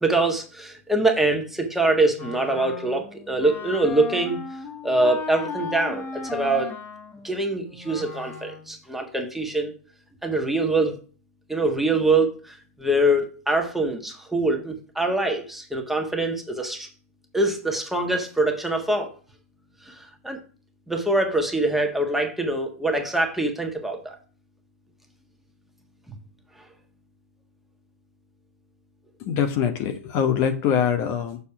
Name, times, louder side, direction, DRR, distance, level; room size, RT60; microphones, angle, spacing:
voice 1, 0.0-4.4 4.8-6.7 7.2-9.7 10.2-11.0 11.5-16.9 17.3-19.1 19.8-20.4 20.9-24.2 26.1-26.2, right 2 dB, 5° right, 3 dB, 1.5 m, -24 dB
Wind instrument woodwind instrument, 2.2-8.7, left 5 dB, 25° left, 1.4 m, -36 dB
voice 2, 29.2-31.4, left 8 dB, 40° left, 7 dB, 1.0 m, -23 dB
6.9 x 4.1 x 5.8 m, 0.37 s
hypercardioid pair, 115°, 8 cm